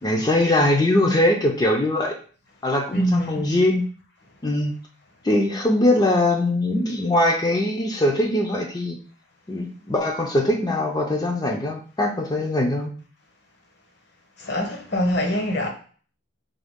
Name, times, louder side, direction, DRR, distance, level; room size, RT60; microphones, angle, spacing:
voice 1, 0.0-2.2 2.6-3.8 4.4-4.7 5.2-9.0 9.5-12.9, left 1 dB, 20° left, 0.4 m, -21 dB
voice 2, 2.9-3.4 14.4-15.7, equal, 55° left, 0.8 m, -24 dB
3.6 x 2.3 x 3.5 m
head